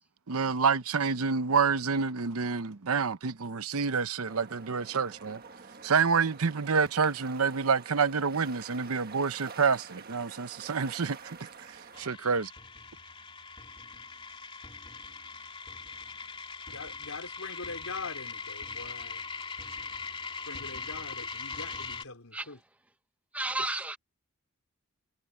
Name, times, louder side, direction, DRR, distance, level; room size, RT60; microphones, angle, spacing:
voice 1, 0.3-5.4 5.8-11.4 12.0-12.5, right 5 dB, 80° right, 0.8 m, -28 dB
sound 1, 4.3-12.1, right 5 dB, 45° right, 1.5 m, -48 dB
sound 2, 11.9-22.0, left 4 dB, 25° left, 2.9 m, -41 dB
voice 2, 16.7-19.2 20.5-22.6, left 3 dB, 80° left, 4.0 m, -42 dB
voice 3, 23.3-24.0, right 2 dB, 5° right, 0.9 m, -33 dB
head